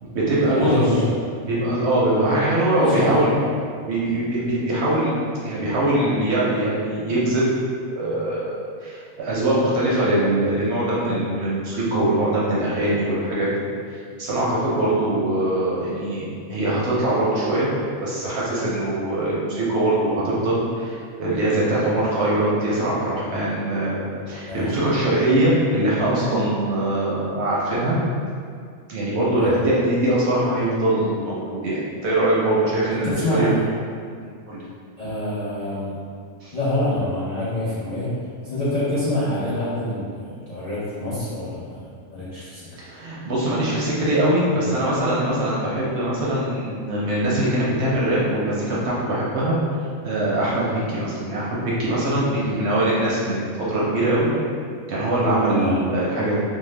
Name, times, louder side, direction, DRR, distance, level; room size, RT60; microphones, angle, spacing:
voice 1, 0.0-0.9 1.4-3.4 3.8-5.1 5.4-7.5 7.9-8.5 8.8-13.5 13.9-17.7 18.0-28.0 28.9-33.5 34.5-34.6 36.4-36.5 42.8-49.5 50.0-54.3 54.9-56.4, right 1 dB, 65° right, -7 dB, 0.7 m, -22 dB
voice 2, 0.5-1.1 2.8-3.4 24.4-24.8 29.4-29.6 33.0-33.6 35.0-36.0 36.5-42.7 55.6-55.8, left 1 dB, 85° left, -11 dB, 0.3 m, -26 dB
2.6 x 2.1 x 3.1 m, 2.2 s
omnidirectional pair, 1.5 m